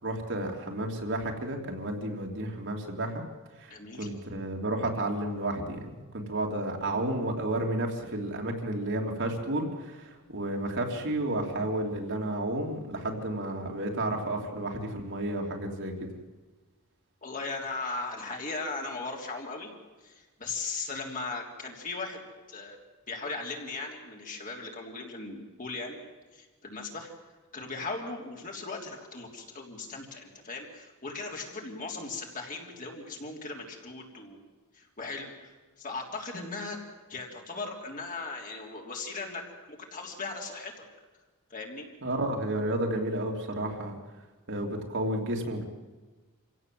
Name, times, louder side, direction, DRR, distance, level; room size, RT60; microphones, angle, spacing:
voice 1, 0.0-3.2 3.6-15.9 42.0-44.0 44.5-45.6, right 1 dB, 55° right, 1 dB, 3.1 m, -32 dB
voice 2, 3.7-4.1 17.2-19.7 20.0-22.2 22.5-22.8 23.1-26.0 26.3-27.1 27.5-34.4 34.7-36.8 37.1-39.4 39.7-40.9 41.5-41.9, left 3 dB, 40° left, 0 dB, 3.4 m, -38 dB
26.5 x 16.5 x 7.7 m, 1.3 s
head